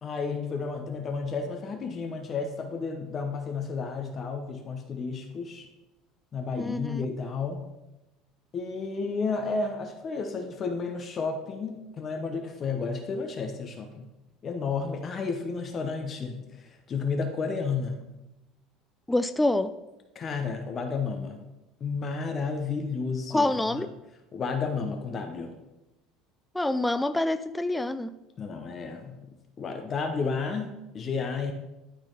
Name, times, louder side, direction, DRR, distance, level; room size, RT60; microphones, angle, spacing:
voice 1, 0.0-5.7 6.3-7.7 8.5-14.1 14.4-18.1 20.1-21.5 21.8-23.9 24.3-25.6 28.4-29.2 29.6-31.5, left 4 dB, 35° left, 5 dB, 0.9 m, -32 dB
voice 2, 6.6-7.0 19.1-19.7 23.3-23.9 26.5-28.1, left 2 dB, 5° left, 11 dB, 0.3 m, -26 dB
12.0 x 4.1 x 4.0 m, 0.97 s
supercardioid pair, 115°, 0 cm